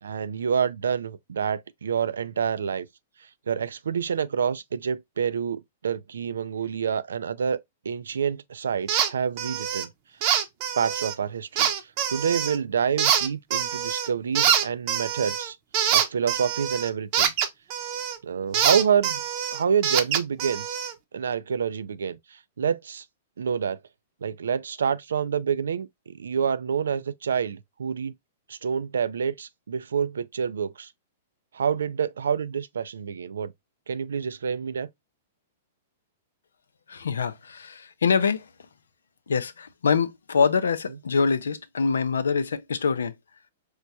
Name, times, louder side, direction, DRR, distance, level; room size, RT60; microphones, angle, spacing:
voice 1, 0.0-2.9 3.2-7.6 7.8-9.9 10.8-15.6 15.9-17.3 18.2-19.2 19.5-20.8 21.1-23.0 23.4-23.8 24.2-28.1 28.5-30.9 31.5-33.5 33.9-34.9, right 7 dB, 85° right, 0.3 m, -27 dB
sound 1, 8.9-9.1 9.4-9.8 10.2-11.1 11.6-12.6 13.0-14.1 14.3-18.2 18.5-20.9, right 9 dB, 45° right, 0.6 m, -25 dB
voice 2, 36.9-38.4 39.3-43.1, left 5 dB, 90° left, 0.4 m, -25 dB
4.5 x 2.2 x 2.6 m
hypercardioid pair, 130°, 0 cm